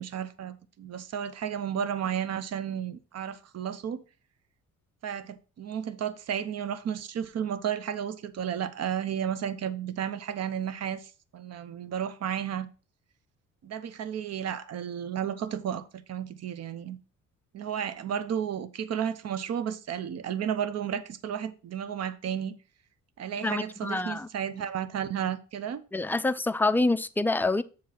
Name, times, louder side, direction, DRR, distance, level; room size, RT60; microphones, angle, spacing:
voice 1, 0.0-4.0 5.0-12.7 13.6-17.0 17.5-22.5 23.2-25.8, right 8 dB, 55° right, 0.8 m, -33 dB
voice 2, 23.4-24.3 25.9-27.6, left 2 dB, 5° left, 0.3 m, -26 dB
7.3 x 3.1 x 5.7 m
cardioid pair, 90°, 30 cm